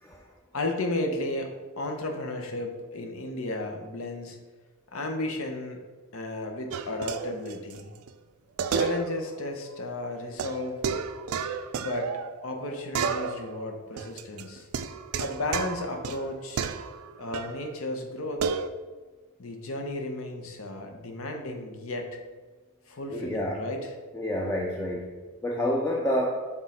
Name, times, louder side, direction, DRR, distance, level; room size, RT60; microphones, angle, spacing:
voice 1, 0.5-4.4 4.9-5.8 6.1-7.9 8.7-10.8 11.7-12.1 12.4-14.7 15.2-16.6 17.2-18.6 19.4-22.2 22.9-23.9, left 2 dB, 70° left, 4 dB, 0.8 m, -33 dB
sound 1, 6.7-7.8 8.1-8.2 8.6-9.4 9.6-9.7 10.4-12.6 12.9-13.6 14.0-17.6 18.4-18.7, right 6 dB, 80° right, 0.4 m, -31 dB
voice 2, 23.1-23.6 24.1-25.2 25.4-26.5, equal, 10° left, 0 dB, 0.5 m, -28 dB
6.0 x 3.8 x 4.2 m, 1.3 s
head